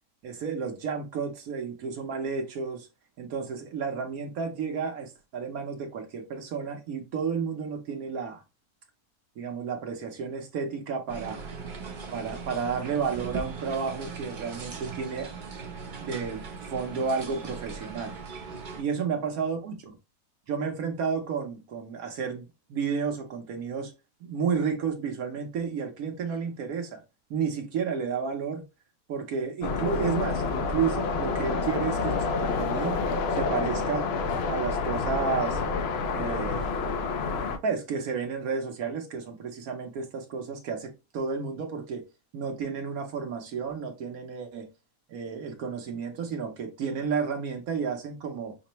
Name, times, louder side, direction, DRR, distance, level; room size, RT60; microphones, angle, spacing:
voice 1, 0.2-2.9 3.2-8.4 9.4-11.4 12.1-15.3 16.0-18.1 18.7-19.9 20.5-23.9 24.2-27.0 27.3-28.6 29.1-33.0 33.3-34.1 34.4-35.6 36.1-36.7 37.6-42.0 42.3-44.7 45.1-48.6, right 6 dB, 70° right, 1.2 m, -31 dB
sound 1, 11.1-18.8, right 5 dB, 45° right, 0.7 m, -39 dB
sound 2, 29.6-37.6, left 4 dB, 75° left, 0.5 m, -28 dB
5.8 x 2.1 x 2.9 m
omnidirectional pair, 1.7 m